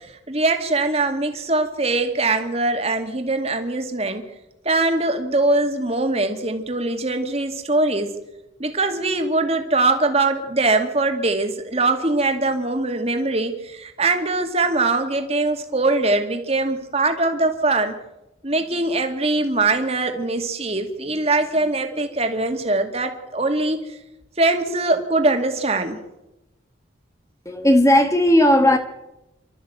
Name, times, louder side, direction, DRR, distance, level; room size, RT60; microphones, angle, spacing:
voice 1, 0.0-4.2 4.6-8.1 8.6-17.9 18.4-23.8 24.4-26.0, right 2 dB, 35° right, 2.3 m, -22 dB
voice 2, 27.4-28.8, left 1 dB, 15° left, 1.3 m, -15 dB
28.0 x 13.0 x 8.1 m
head